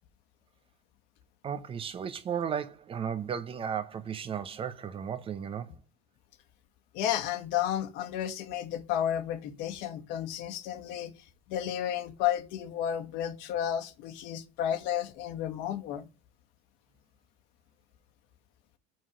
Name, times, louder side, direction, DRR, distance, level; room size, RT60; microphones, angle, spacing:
voice 1, 1.4-5.7, right 8 dB, 30° right, 0.8 m, -34 dB
voice 2, 6.9-11.1 11.5-16.1, left 10 dB, 65° left, 1.7 m, -32 dB
6.1 x 4.7 x 5.0 m
supercardioid pair, 125°, 19 cm